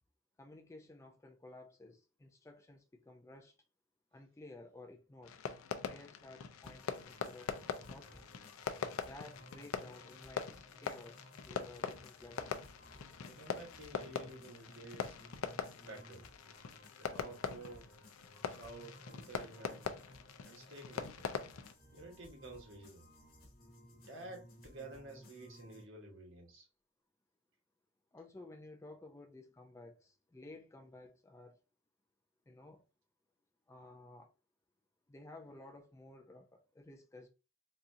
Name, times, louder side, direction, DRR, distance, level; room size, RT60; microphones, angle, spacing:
voice 1, 0.4-3.5 4.1-5.4 5.8-7.5 7.9-8.3 9.0-12.5 28.1-31.6 32.5-32.8 33.7-34.3 35.1-37.3, left 2 dB, 15° left, 0.3 m, -54 dB
Fireworks, 5.2-21.7, left 6 dB, 85° left, 0.5 m, -43 dB
sound 1, 6.6-25.8, equal, 45° left, 1.1 m, -59 dB
voice 2, 13.2-15.2 15.8-16.2 17.0-17.9 18.5-19.9 20.4-21.3 21.9-23.1 23.9-26.7, right 2 dB, 70° right, 1.2 m, -51 dB
4.2 x 2.4 x 2.6 m
head